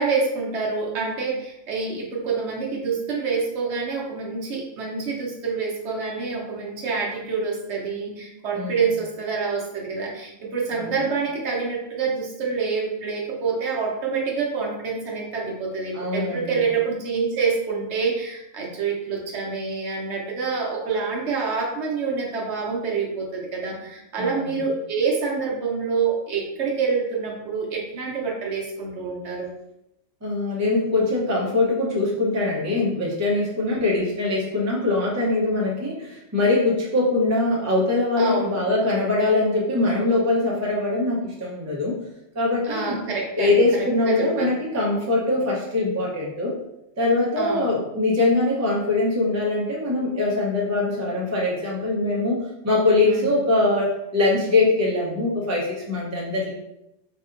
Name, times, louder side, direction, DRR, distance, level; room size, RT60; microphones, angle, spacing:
voice 1, 0.0-29.5 33.7-34.0 38.2-38.6 42.6-44.5 47.4-47.8 53.0-53.3, right 5 dB, 65° right, -2 dB, 1.0 m, -27 dB
voice 2, 15.9-16.6 24.2-24.6 30.2-42.0 42.3-43.0 43.4-46.5 47.0-56.5, left 2 dB, 15° right, -4 dB, 0.6 m, -22 dB
4.2 x 2.7 x 2.5 m, 0.86 s
omnidirectional pair, 1.3 m